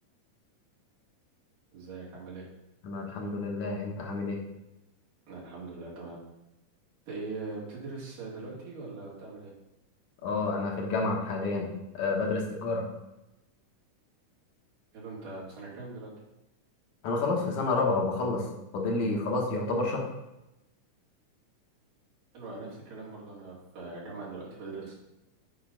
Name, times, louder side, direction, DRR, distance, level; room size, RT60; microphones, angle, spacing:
voice 1, 1.7-2.5 5.3-6.2 7.1-9.5 14.9-16.1 22.3-25.0, right 3 dB, 90° right, -6 dB, 4.0 m, -41 dB
voice 2, 2.8-4.4 10.2-11.7 11.9-12.9 17.0-18.4 18.7-20.1, left 3 dB, 65° left, 0 dB, 2.4 m, -29 dB
8.6 x 5.4 x 3.9 m, 0.94 s
omnidirectional pair, 3.7 m